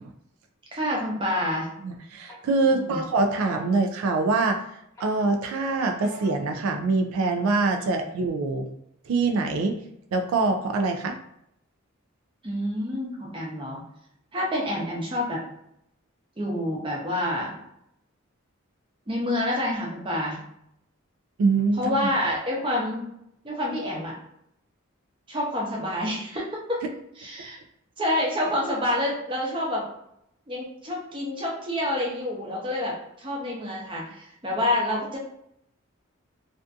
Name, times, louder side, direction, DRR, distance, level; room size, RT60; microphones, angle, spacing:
voice 1, 0.7-1.7 2.7-3.0 7.8-7.9 12.4-13.8 14.3-15.4 16.4-17.6 19.1-20.4 21.8-23.1 23.4-24.1 25.3-26.8 27.2-27.6 28.0-29.8 30.5-35.2, left 1 dB, 25° right, -3 dB, 0.6 m, -28 dB
sound 1, 1.3-1.9 2.3-4.6 5.0-6.6, left 1 dB, 15° left, 0.8 m, -47 dB
voice 2, 1.8-4.6 5.0-8.7 9.1-9.8 10.1-11.2 21.4-21.9, right 3 dB, 85° right, 5 dB, 0.3 m, -24 dB
2.5 x 2.4 x 2.3 m, 0.75 s
head